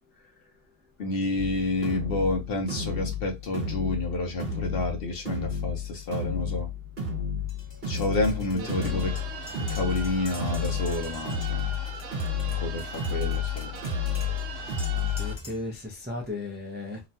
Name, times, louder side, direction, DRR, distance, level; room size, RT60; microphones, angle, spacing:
voice 1, 1.0-6.7 7.9-9.1 9.6-11.7 12.5-13.8, left 2 dB, 55° left, 0.8 m, -29 dB
sound 1, 1.4-15.4, left 6 dB, 55° right, 1.1 m, -31 dB
Tap, 7.5-15.8, left 1 dB, 25° left, 0.8 m, -47 dB
voice 2, 8.2-9.1 14.9-17.0, left 2 dB, 15° right, 0.3 m, -36 dB
sound 2, 8.6-15.3, right 5 dB, 75° right, 1.0 m, -40 dB
3.0 x 2.2 x 2.6 m
omnidirectional pair, 1.3 m